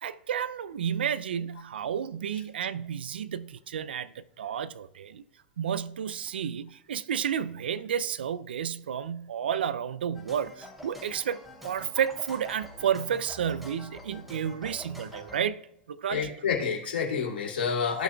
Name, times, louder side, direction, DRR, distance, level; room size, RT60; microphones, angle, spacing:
voice 1, 0.0-5.2 5.6-15.6 15.9-16.3, right 8 dB, 80° right, 0.4 m, -31 dB
sound 1, 10.1-15.4, left 1 dB, 5° right, 2.9 m, -46 dB
voice 2, 16.1-18.0, left 6 dB, 85° left, 2.6 m, -28 dB
16.0 x 5.9 x 2.3 m
hypercardioid pair, 110°, 5 cm